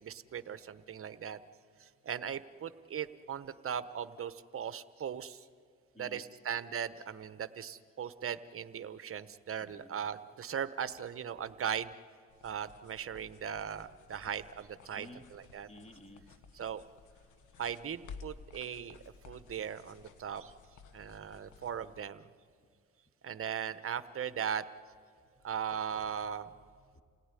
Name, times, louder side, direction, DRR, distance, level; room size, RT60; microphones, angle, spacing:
voice 1, 0.0-1.4 1.8-5.4 6.0-11.9 12.4-15.1 15.3-15.7 16.6-16.8 17.6-19.0 19.3-20.5 20.9-22.3 23.2-24.6 25.4-26.5, right 8 dB, 45° right, 13 dB, 1.0 m, -38 dB
voice 2, 0.6-1.0 5.9-6.3 9.6-10.0 14.2-14.3 14.9-15.3 15.7-16.3 26.2-27.0, left 1 dB, 20° left, 5 dB, 2.3 m, -55 dB
sound 1, 12.3-22.0, left 5 dB, 80° left, 1.3 m, -55 dB
29.0 x 17.5 x 9.9 m, 2.1 s
cardioid pair, 90°, 30 cm